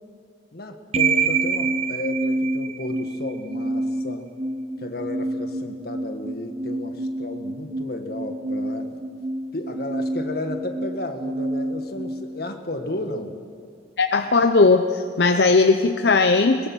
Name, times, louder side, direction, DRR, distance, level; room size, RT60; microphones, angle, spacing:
voice 1, 0.5-4.3 4.8-9.0 9.5-13.4, left 1 dB, 60° left, 5 dB, 1.8 m, -33 dB
sound 1, 0.9-13.0, right 3 dB, 35° right, 1.3 m, -27 dB
voice 2, 14.0-16.7, left 3 dB, 75° left, 7 dB, 0.8 m, -18 dB
21.5 x 21.5 x 6.3 m, 2.2 s
head